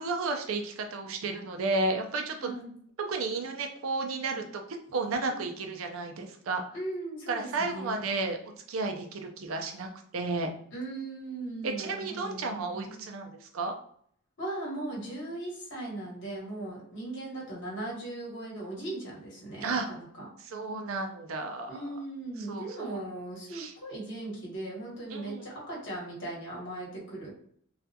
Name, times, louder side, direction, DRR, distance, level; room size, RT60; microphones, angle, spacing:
voice 1, 0.0-2.5 3.0-4.6 4.9-6.6 7.3-8.4 8.7-10.5 11.6-13.8 19.6-19.9 20.4-21.9 22.5-23.0 23.5-23.7 25.1-25.5, right 3 dB, 85° right, 4 dB, 0.4 m, -32 dB
voice 2, 2.4-2.7 5.2-5.4 6.7-8.0 10.7-13.0 14.4-20.3 21.7-27.3, right 2 dB, 60° left, -4 dB, 1.1 m, -38 dB
2.4 x 2.2 x 2.7 m, 0.63 s
head